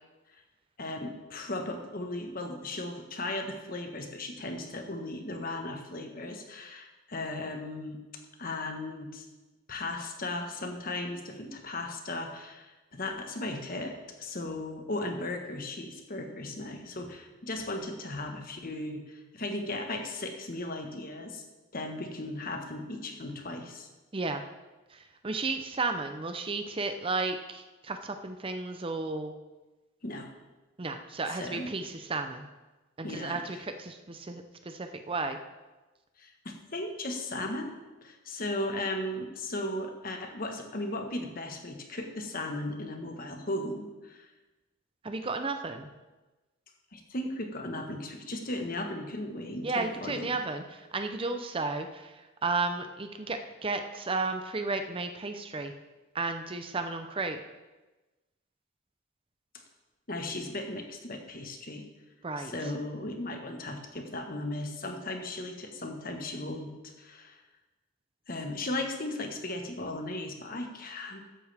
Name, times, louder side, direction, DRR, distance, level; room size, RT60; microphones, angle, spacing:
voice 1, 0.8-8.0 8.4-9.2 9.7-21.4 21.7-23.9 30.0-30.3 31.3-31.7 33.0-33.6 36.2-37.7 38.0-44.3 46.9-50.3 60.1-61.8 62.4-66.7 67.0-67.4 68.3-71.2, left 2 dB, 45° left, 4 dB, 1.3 m, -36 dB
voice 2, 24.1-24.4 24.9-29.3 30.8-32.5 33.0-35.4 45.0-45.9 49.6-55.7 56.1-57.4 62.2-62.7, right 3 dB, 25° right, 7 dB, 0.6 m, -33 dB
13.5 x 9.6 x 3.5 m, 1.1 s
head